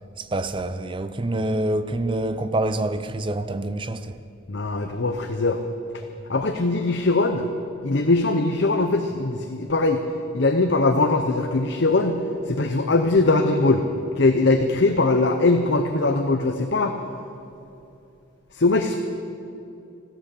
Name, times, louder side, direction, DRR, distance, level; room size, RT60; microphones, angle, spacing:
voice 1, 0.2-4.1, right 1 dB, 25° right, 0.5 m, -26 dB
voice 2, 4.5-5.6 6.3-7.5 7.8-10.0 10.3-13.9 14.2-16.9 18.5-19.0, left 3 dB, 60° left, 0.7 m, -21 dB
14.0 x 13.5 x 6.8 m
head